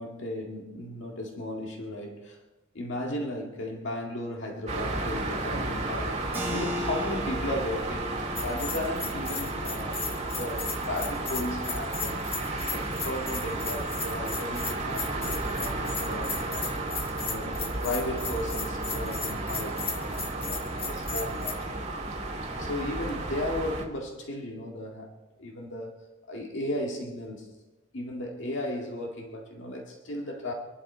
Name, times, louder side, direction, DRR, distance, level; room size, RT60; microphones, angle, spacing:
voice 1, 0.0-2.4 2.7-6.2 6.5-8.1 8.4-10.1 10.4-12.3 12.7-16.8 17.2-21.8 22.6-25.1 25.4-27.5 27.9-30.5, left 1 dB, 65° left, 2.0 m, -35 dB
sound 1, 4.7-23.8, right 2 dB, 35° right, 2.4 m, -33 dB
Keyboard (musical), 6.3-16.7, left 1 dB, 10° right, 2.8 m, -41 dB
Bell, 8.4-21.5, left 5 dB, 30° left, 1.5 m, -36 dB
25.5 x 11.5 x 4.4 m
head